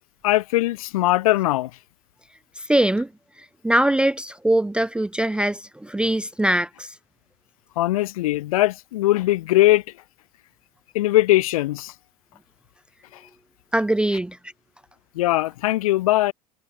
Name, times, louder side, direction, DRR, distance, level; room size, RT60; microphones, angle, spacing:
voice 1, 0.2-1.7 7.8-9.8 10.9-11.9 15.2-16.3, left 16 dB, 65° left, 2.6 m, -20 dB
voice 2, 2.6-3.1 3.6-6.9 13.7-14.4, right 1 dB, 5° right, 0.5 m, -22 dB
figure-of-eight pair, 75°, 19 cm